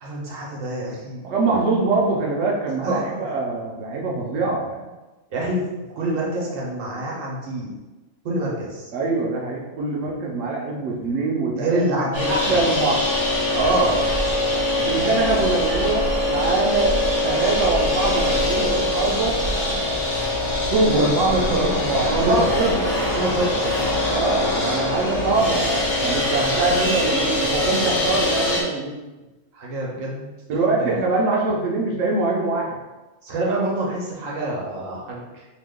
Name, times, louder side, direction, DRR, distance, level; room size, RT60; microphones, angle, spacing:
voice 1, 0.0-1.3 2.8-3.3 5.3-5.7 6.0-7.8 8.2-8.9 11.6-12.6 13.5-14.1 20.9-22.5 23.1-23.8 29.5-30.3 30.8-30.9 33.2-35.2, right 1 dB, 85° right, -3 dB, 1.2 m, -25 dB
voice 2, 1.2-4.8 8.9-13.0 14.8-17.0 17.2-19.3 20.5-21.1 22.1-22.9 24.1-29.0 30.5-32.8, right 3 dB, 65° right, -2 dB, 0.8 m, -23 dB
sound 1, 12.1-28.6, left 1 dB, 35° left, 0.6 m, -23 dB
2.9 x 2.2 x 3.5 m, 1.1 s
omnidirectional pair, 1.4 m